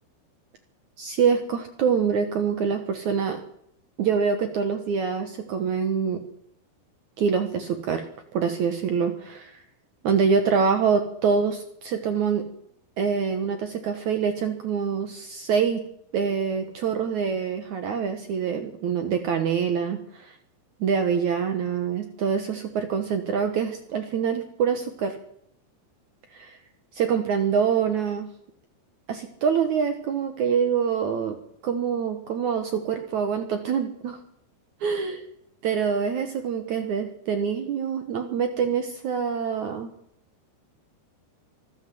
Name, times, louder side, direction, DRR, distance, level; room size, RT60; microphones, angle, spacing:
voice 1, 1.0-3.4 4.0-6.2 7.2-8.1 8.3-9.5 10.0-12.5 13.0-15.8 16.1-20.3 20.8-25.2 26.3-26.6 26.9-28.3 29.1-31.4 31.6-34.2 34.8-35.2 35.6-39.9, right 6 dB, 75° right, 7 dB, 1.7 m, -25 dB
24.5 x 13.5 x 7.8 m, 0.72 s
omnidirectional pair, 5.4 m